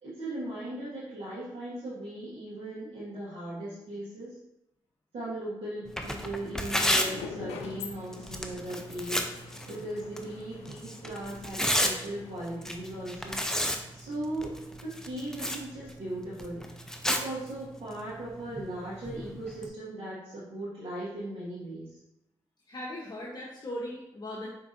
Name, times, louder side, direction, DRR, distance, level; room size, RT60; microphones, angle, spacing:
voice 1, 0.0-4.3 5.1-9.3 9.7-13.7 13.9-16.6 17.1-22.0, right 1 dB, 65° right, -11 dB, 1.7 m, -38 dB
Tearing, 5.8-19.7, equal, 5° left, 0.6 m, -34 dB
sound 1, 6.9-13.9, left 6 dB, 85° left, 0.4 m, -46 dB
voice 2, 22.7-24.5, left 1 dB, 40° left, -4 dB, 0.9 m, -38 dB
5.2 x 3.6 x 2.6 m, 0.84 s
supercardioid pair, 45°, 11 cm